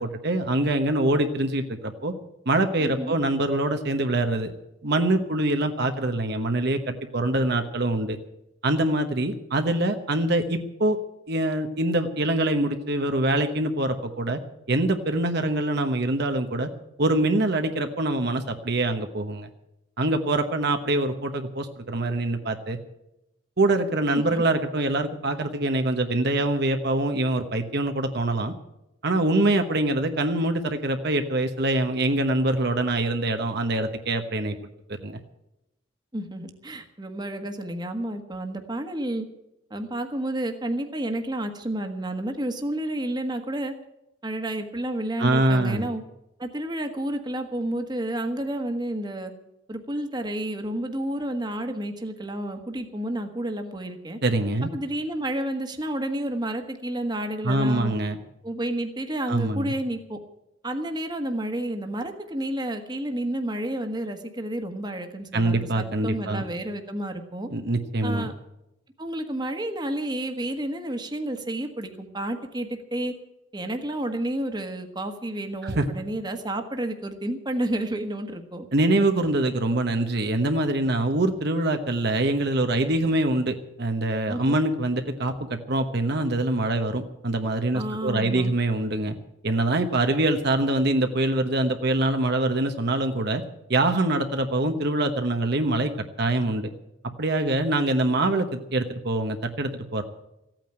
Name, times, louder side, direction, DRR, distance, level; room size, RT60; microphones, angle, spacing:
voice 1, 0.0-2.1 2.5-4.5 4.8-8.2 8.6-11.0 11.3-14.4 14.7-16.7 17.0-19.5 20.0-22.8 23.6-28.5 29.0-34.5 35.0-35.2 45.2-45.9 54.2-54.7 57.4-58.2 59.3-59.7 65.3-66.4 67.5-68.3 75.6-75.8 78.7-89.1 89.4-93.4 93.7-95.9 96.2-96.7 97.2-100.0, right 2 dB, 55° right, 6 dB, 1.1 m, -24 dB
voice 2, 2.8-3.1 24.1-24.4 36.1-39.3 39.7-43.7 44.2-46.0 46.4-49.3 49.7-54.2 54.7-57.9 58.4-60.2 60.6-67.5 68.0-68.3 69.0-73.1 73.5-78.7 84.3-84.6 87.7-88.5, right 1 dB, 20° right, 5 dB, 1.5 m, -30 dB
15.5 x 9.1 x 9.0 m, 0.89 s
head